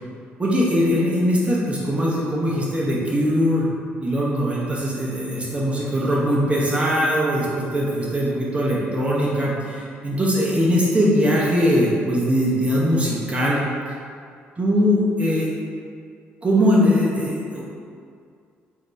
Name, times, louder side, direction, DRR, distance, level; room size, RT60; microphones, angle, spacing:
voice 1, 0.4-3.7 4.0-13.6 14.6-15.5 16.4-17.6, equal, 25° right, -6 dB, 0.9 m, -21 dB
4.0 x 2.7 x 3.1 m, 2.2 s
supercardioid pair, 60°, 5 cm